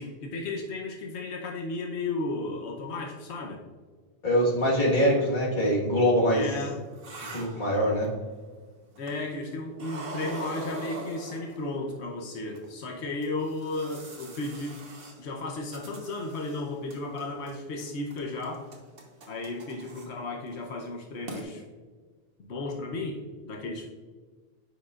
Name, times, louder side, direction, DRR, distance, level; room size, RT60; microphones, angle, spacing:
voice 1, 0.0-3.6 6.3-6.8 9.0-14.8 15.2-18.6 19.3-21.6 22.4-23.9, left 2 dB, 85° left, 1 dB, 1.1 m, -34 dB
voice 2, 4.2-6.4 7.3-8.1, equal, 50° left, -3 dB, 1.7 m, -23 dB
sound 1, 6.4-8.3 9.0-9.4 9.8-11.9 12.5-12.7 13.2-16.6 16.9-17.5 17.8-20.1 20.5-20.6 21.0-21.1 21.3-21.4, right 2 dB, 60° right, 1.3 m, -42 dB
9.9 x 5.2 x 2.4 m, 1.5 s
omnidirectional pair, 1.1 m